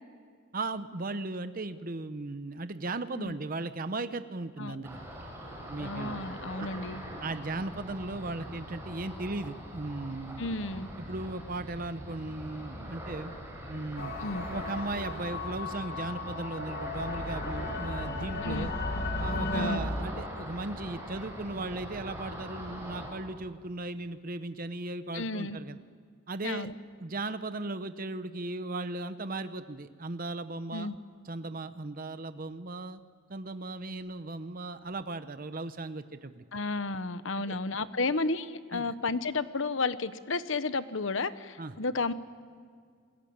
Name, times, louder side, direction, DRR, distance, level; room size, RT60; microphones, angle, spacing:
voice 1, 0.5-5.0 5.7-6.3 6.6-6.7 7.2-10.4 11.0-13.3 13.7-14.1 14.5-18.7 19.2-25.8 26.3-26.7 27.0-30.9 31.2-33.0 33.3-36.4 37.4-37.6 38.7-38.9 41.6-41.7, right 2 dB, 45° right, 11 dB, 0.8 m, -37 dB
Ocean, 4.8-23.1, equal, 10° right, 6.3 m, -42 dB
voice 2, 5.8-7.0 10.4-10.9 14.2-14.5 18.4-18.7 19.5-19.8 25.1-25.6 26.4-26.7 30.7-31.0 36.5-42.1, left 3 dB, 70° left, 13 dB, 1.1 m, -32 dB
sound 1, 14.0-19.8, left 2 dB, 50° left, 2.2 m, -35 dB
28.0 x 21.5 x 8.8 m, 2.1 s
head